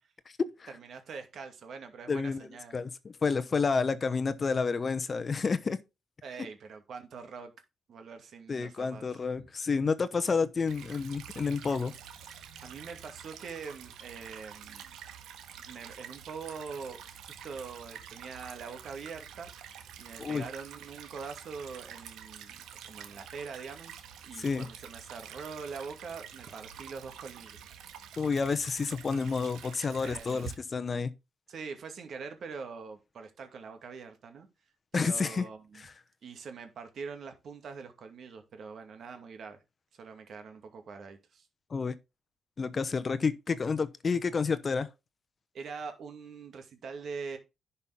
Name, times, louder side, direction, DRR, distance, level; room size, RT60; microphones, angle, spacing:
voice 1, 0.7-2.8 6.2-7.5 7.9-9.2 12.6-14.9 15.6-19.5 20.0-23.9 24.2-27.6 30.0-30.5 31.5-34.5 34.9-35.8 36.2-39.6 40.0-41.5 45.5-47.4, right 5 dB, 60° right, 2.4 m, -43 dB
voice 2, 2.1-2.4 2.7-5.8 8.5-11.9 20.2-20.4 24.4-24.7 28.2-31.1 34.9-35.5 41.7-41.9 42.6-44.9, left 5 dB, 35° left, 0.9 m, -30 dB
Stream / Trickle dribble, 10.7-30.5, right 8 dB, 85° right, 1.5 m, -48 dB
11.0 x 5.6 x 3.7 m
cardioid pair, 90°, 0 cm